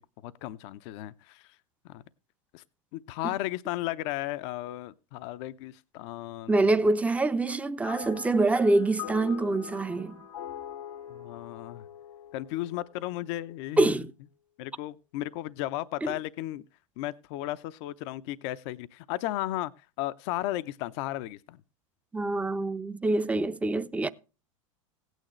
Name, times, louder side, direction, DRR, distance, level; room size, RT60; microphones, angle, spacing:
voice 1, 0.2-1.5 1.8-2.0 2.5-2.6 2.9-6.7 11.1-11.8 12.3-14.0 14.6-16.6 17.0-19.7 20.0-21.6, left 15 dB, 55° left, 0.6 m, -35 dB
voice 2, 6.5-10.2 13.8-14.1 22.1-24.1, right 2 dB, 10° right, 0.6 m, -25 dB
sound 1, 7.8-13.3, left 11 dB, 85° left, 1.1 m, -43 dB
16.5 x 9.1 x 3.1 m
hypercardioid pair, 95°, 17 cm